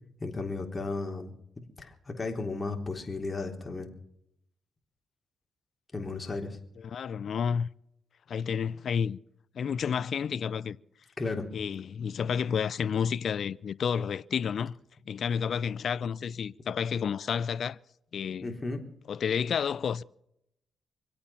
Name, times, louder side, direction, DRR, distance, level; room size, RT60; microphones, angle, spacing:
voice 1, 0.2-1.3 1.8-3.9 5.9-6.6 11.2-11.5 18.4-18.9, left 3 dB, 30° left, 3.6 m, -34 dB
voice 2, 6.8-7.7 8.3-9.2 9.6-10.8 11.5-14.7 15.1-17.8 18.1-18.6 19.1-20.0, left 7 dB, 65° left, 0.6 m, -30 dB
26.0 x 8.7 x 5.8 m
cardioid pair, 70°, 0 cm